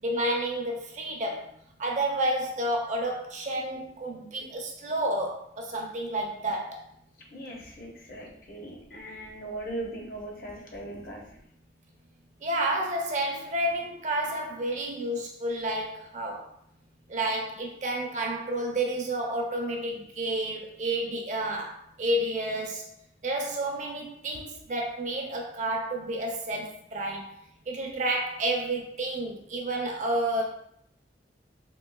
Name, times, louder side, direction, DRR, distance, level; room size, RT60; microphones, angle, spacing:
voice 1, 0.0-6.8 12.4-16.5 17.1-22.9 23.2-27.4 27.7-30.4, right 1 dB, 40° right, 1 dB, 0.5 m, -30 dB
voice 2, 7.3-11.2, right 1 dB, 50° left, -1 dB, 0.7 m, -39 dB
3.7 x 2.7 x 2.3 m, 0.70 s
head